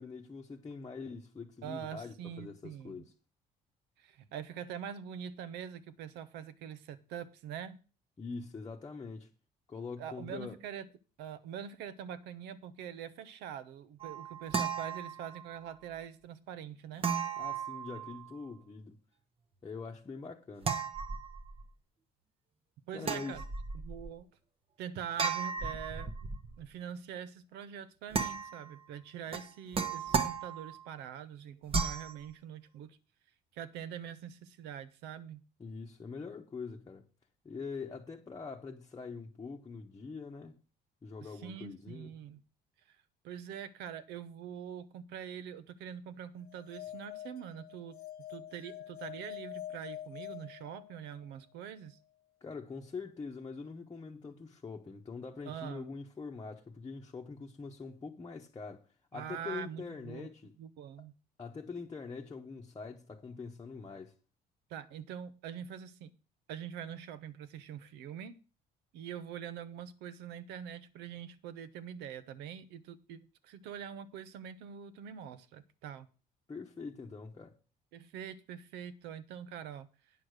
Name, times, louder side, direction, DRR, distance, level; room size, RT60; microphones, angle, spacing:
voice 1, 0.0-3.1 8.2-9.3 9.7-10.6 17.4-19.0 19.6-20.7 22.9-23.4 35.6-37.0 37.4-40.5 41.0-42.1 52.4-58.9 59.1-60.5 61.4-64.1 76.5-77.5, left 4 dB, 25° left, 1.0 m, -44 dB
voice 2, 1.6-3.1 4.0-7.8 10.0-10.9 11.2-17.1 22.9-23.4 23.7-24.3 24.8-26.1 26.6-33.0 33.5-35.4 41.2-42.4 43.2-48.0 48.3-52.0 55.5-55.9 59.1-60.3 60.6-61.1 64.7-66.1 66.5-68.4 68.9-76.1 77.9-79.9, right 8 dB, 90° right, 0.9 m, -44 dB
sound 1, 14.0-15.6 17.0-18.4 20.6-21.7 23.0-24.1 25.2-26.6 28.1-28.8 29.3-30.9 31.7-32.1, right 5 dB, 35° right, 1.1 m, -35 dB
sound 2, 46.5-51.3, left 12 dB, 65° left, 0.7 m, -46 dB
9.2 x 6.4 x 6.4 m
cardioid pair, 110°, 17 cm